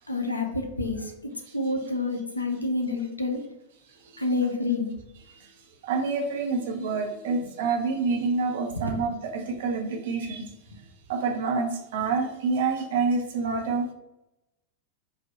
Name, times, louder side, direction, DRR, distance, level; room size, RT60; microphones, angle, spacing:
voice 1, 0.1-1.1 1.5-3.4 4.2-4.9 8.7-8.9, left 2 dB, 85° left, 4 dB, 0.7 m, -28 dB
voice 2, 5.8-10.5 11.1-13.9, right 4 dB, 55° right, 1 dB, 0.9 m, -27 dB
4.2 x 2.7 x 4.2 m, 0.88 s
figure-of-eight pair, 90°, 0 cm